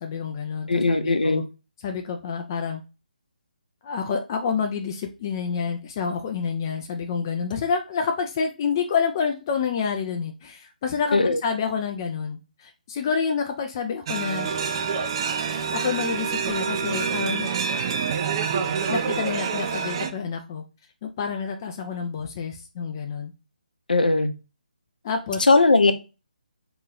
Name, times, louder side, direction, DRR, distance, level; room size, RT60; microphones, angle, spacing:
voice 1, 0.0-1.0 1.2-1.4 1.8-2.8 3.8-14.5 15.7-17.5 18.9-20.6 21.0-23.3 25.0-25.5, left 6 dB, 25° left, 0.4 m, -28 dB
voice 2, 0.7-1.4 11.1-11.4 23.9-24.3 25.5-25.9, left 3 dB, 70° left, 0.7 m, -18 dB
sound 1, 14.1-20.1, right 6 dB, 30° right, 0.4 m, -27 dB
3.6 x 3.0 x 3.7 m
figure-of-eight pair, 145°, 5 cm